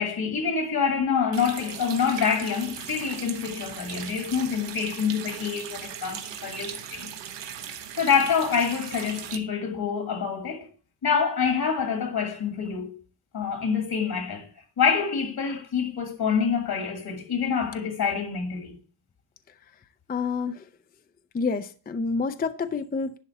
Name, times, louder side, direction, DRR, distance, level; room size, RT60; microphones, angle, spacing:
voice 1, 0.0-7.1 8.0-10.7 11.0-13.0 13.3-14.5 14.8-18.8, left 6 dB, 60° left, 1.9 m, -26 dB
Water tap faucet, 1.3-9.4, right 9 dB, 85° right, 1.1 m, -38 dB
voice 2, 20.1-20.6 21.3-23.2, left 4 dB, 25° left, 0.4 m, -28 dB
10.5 x 3.9 x 7.0 m
wide cardioid pair, 170°, 42 cm